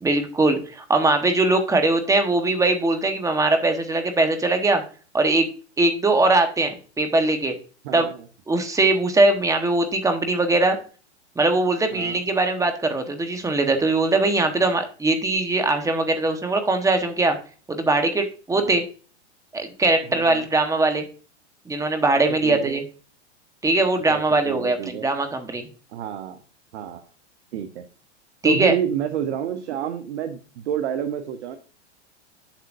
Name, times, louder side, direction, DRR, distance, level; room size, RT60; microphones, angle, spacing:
voice 1, 0.0-4.8 5.1-5.5 5.8-7.5 7.9-8.1 8.5-10.8 11.4-17.4 17.7-18.8 19.5-21.0 21.7-22.8 23.6-25.7 28.4-28.7, right 2 dB, 10° right, 6 dB, 1.2 m, -21 dB
voice 2, 7.8-8.2 11.9-12.2 18.5-18.8 20.1-20.5 22.4-22.8 24.1-25.1 25.9-26.4 26.7-27.0 27.5-27.8 28.4-31.6, right 9 dB, 70° right, 7 dB, 1.1 m, -29 dB
7.7 x 7.3 x 2.6 m, 0.38 s
hypercardioid pair, 115°, 35 cm